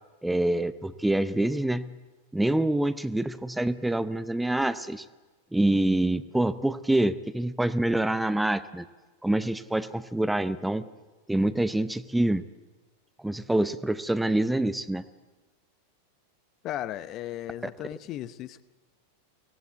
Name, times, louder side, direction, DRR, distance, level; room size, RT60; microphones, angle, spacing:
voice 1, 0.2-1.9 2.3-5.1 5.5-8.9 9.2-10.9 11.3-12.4 13.2-15.0, right 1 dB, 5° right, 14 dB, 0.7 m, -26 dB
voice 2, 16.6-18.6, left 12 dB, 35° left, 15 dB, 0.8 m, -36 dB
24.5 x 17.5 x 8.2 m, 1.3 s
figure-of-eight pair, 90°, 0 cm